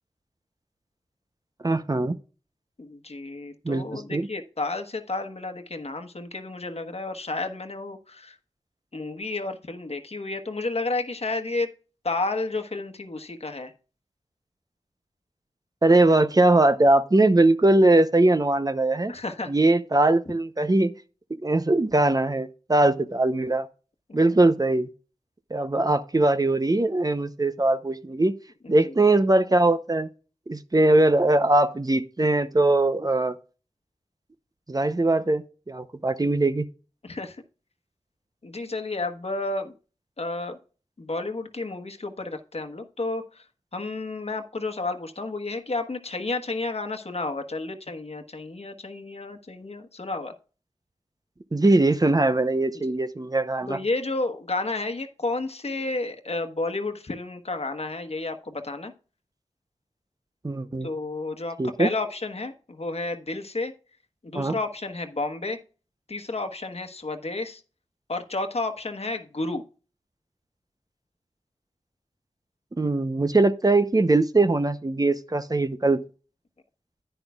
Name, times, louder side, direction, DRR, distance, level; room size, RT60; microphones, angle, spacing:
voice 1, 1.6-2.2 3.6-4.3 15.8-19.1 19.5-20.9 21.4-23.7 24.1-24.9 25.5-28.3 28.7-30.1 30.5-33.3 34.7-36.6 51.5-53.8 60.4-60.9 61.6-61.9 64.3-64.6 72.8-76.0, right 2 dB, 30° right, 0.7 m, -21 dB
voice 2, 2.8-8.4 8.9-11.7 12.0-13.7 19.1-19.5 24.1-24.2 28.6-28.9 37.0-37.4 38.4-39.7 40.2-40.6 41.0-43.4 43.7-50.3 52.8-52.9 53.7-58.9 60.8-63.7 64.2-65.6 66.1-67.6 68.1-69.6, left 2 dB, 55° left, 1.2 m, -31 dB
10.5 x 10.0 x 2.3 m
wide cardioid pair, 55°, 12 cm